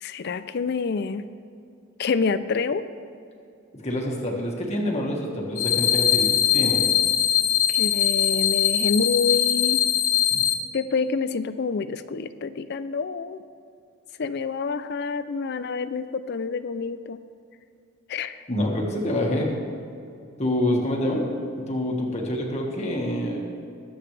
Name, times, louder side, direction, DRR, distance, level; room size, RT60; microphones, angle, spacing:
voice 1, 0.0-1.3 2.0-2.8 7.7-9.9 10.7-13.4 14.2-17.2 18.1-18.4, left 5 dB, 55° left, 13 dB, 0.4 m, -27 dB
voice 2, 3.8-6.8 10.3-10.4 18.5-19.5 20.4-21.3 21.7-23.4, left 1 dB, 35° left, -1 dB, 1.6 m, -26 dB
sound 1, 5.6-10.5, left 10 dB, 75° left, 1.0 m, -21 dB
21.0 x 8.0 x 3.3 m, 2.5 s
head